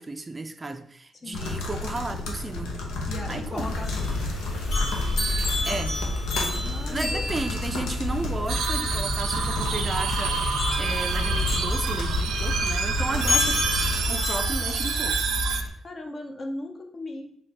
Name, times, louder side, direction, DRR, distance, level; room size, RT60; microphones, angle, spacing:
voice 1, 0.0-2.8 3.3-3.8 5.7-6.0 6.9-10.4 10.8-13.6 14.1-15.2, right 2 dB, 20° right, 7 dB, 0.4 m, -33 dB
sound 1, 1.3-14.1, left 2 dB, 90° left, 0.8 m, -33 dB
voice 2, 3.1-4.3 6.6-7.3 15.8-17.4, left 2 dB, 40° left, 4 dB, 0.7 m, -37 dB
sound 2, 3.6-15.7, left 2 dB, 70° left, 1.8 m, -29 dB
sound 3, 8.5-15.6, right 6 dB, 75° right, 0.6 m, -28 dB
3.3 x 3.2 x 4.1 m, 0.66 s
cardioid pair, 90°, 0 cm